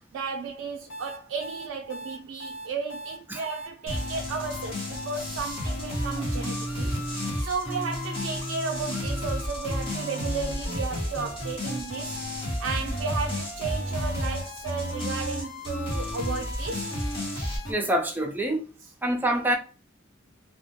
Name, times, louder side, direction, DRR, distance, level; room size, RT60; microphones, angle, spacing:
voice 1, 0.1-6.9 7.4-12.2 12.6-16.9, right 5 dB, 90° right, 0.3 m, -34 dB
sound 1, 0.9-17.7, equal, 70° left, 1.1 m, -35 dB
sound 2, 3.9-17.6, left 1 dB, 25° left, 0.8 m, -33 dB
voice 2, 17.7-18.6 19.0-19.6, right 1 dB, 10° right, 0.5 m, -25 dB
2.2 x 2.0 x 2.7 m
head